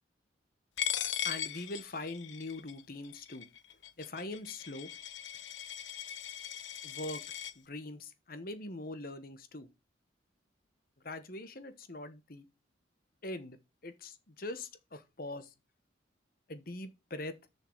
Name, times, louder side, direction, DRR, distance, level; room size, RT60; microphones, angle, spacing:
Coin (dropping), 0.8-7.5, left 10 dB, 75° left, 0.8 m, -39 dB
voice 1, 1.2-3.5 4.0-4.9 6.8-7.2 7.6-9.7 11.0-12.4 13.2-13.6 13.8-15.5 16.5-17.4, left 2 dB, 50° left, 1.2 m, -42 dB
7.1 x 5.7 x 7.2 m
head